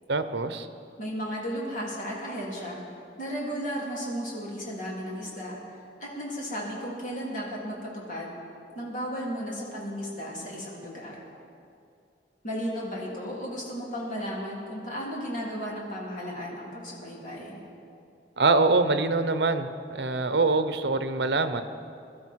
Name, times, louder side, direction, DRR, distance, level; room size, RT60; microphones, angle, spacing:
voice 1, 0.1-0.7 18.4-21.6, right 3 dB, 70° right, 10 dB, 0.9 m, -24 dB
voice 2, 1.0-2.8 3.2-5.6 6.0-8.4 8.8-11.2 12.4-17.6, equal, 45° left, -4 dB, 3.7 m, -34 dB
22.5 x 12.5 x 4.7 m, 2.5 s
head